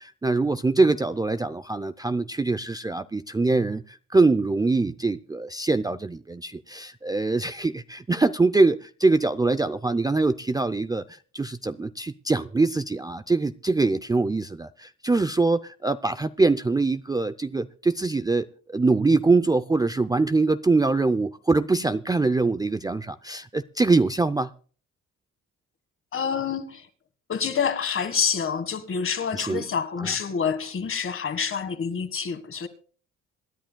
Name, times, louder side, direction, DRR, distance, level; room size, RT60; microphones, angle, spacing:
voice 1, 0.0-11.0 11.3-24.5 29.3-29.6 30.0-30.1, right 3 dB, 15° right, 0.5 m, -23 dB
voice 2, 26.1-26.9 27.3-32.7, left 6 dB, 45° left, 1.7 m, -27 dB
26.5 x 10.5 x 2.3 m
cardioid pair, 90°, 30 cm